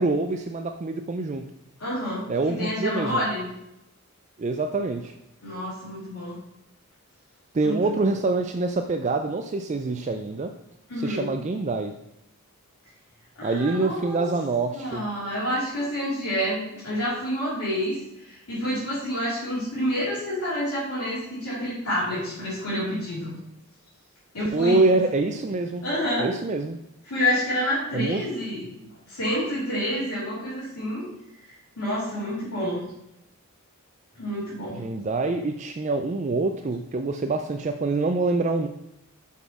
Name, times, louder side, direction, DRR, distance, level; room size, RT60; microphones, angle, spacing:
voice 1, 0.0-1.4 2.3-3.2 4.4-5.1 7.5-10.5 11.0-11.9 13.4-15.0 24.5-25.8 26.2-26.8 27.9-28.2 34.8-38.7, right 3 dB, 30° right, 6 dB, 0.4 m, -25 dB
voice 2, 1.8-3.5 5.4-6.4 7.6-8.1 10.9-11.3 13.4-14.3 14.7-23.3 24.3-24.9 25.8-26.3 27.0-28.6 29.1-31.1 31.4-32.8 34.1-34.8, equal, 80° left, -10 dB, 3.2 m, -28 dB
6.2 x 5.6 x 5.9 m, 0.84 s
head